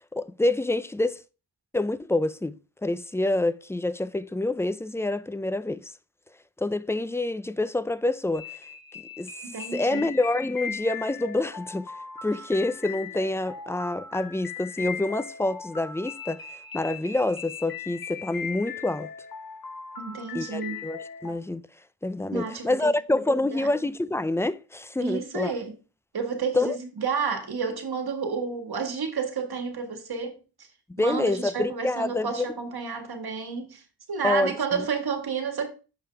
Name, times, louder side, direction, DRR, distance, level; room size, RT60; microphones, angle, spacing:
voice 1, 0.1-1.2 1.7-5.9 6.6-8.6 9.2-9.3 9.7-11.9 12.2-16.4 16.7-19.1 20.3-21.6 22.0-25.5 26.5-26.8 30.9-32.4 34.2-34.8, left 2 dB, 5° left, 0.4 m, -27 dB
sound 1, 8.3-21.3, left 6 dB, 55° left, 1.2 m, -39 dB
voice 2, 9.4-10.0 20.0-20.8 22.3-22.9 23.3-23.7 25.0-25.7 26.1-30.4 31.0-33.8 34.1-35.7, right 5 dB, 60° right, 1.7 m, -30 dB
6.8 x 5.5 x 3.4 m
cardioid pair, 55°, 41 cm